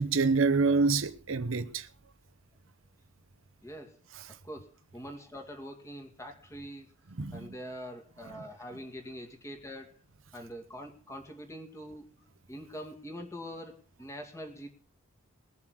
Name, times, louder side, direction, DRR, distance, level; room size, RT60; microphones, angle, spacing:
voice 1, 0.0-1.9 7.2-7.5, right 4 dB, 65° right, 0.9 m, -26 dB
voice 2, 3.6-4.0 4.3-6.9 7.3-10.0 10.3-14.7, equal, 15° left, 2.3 m, -44 dB
20.5 x 7.2 x 6.4 m
head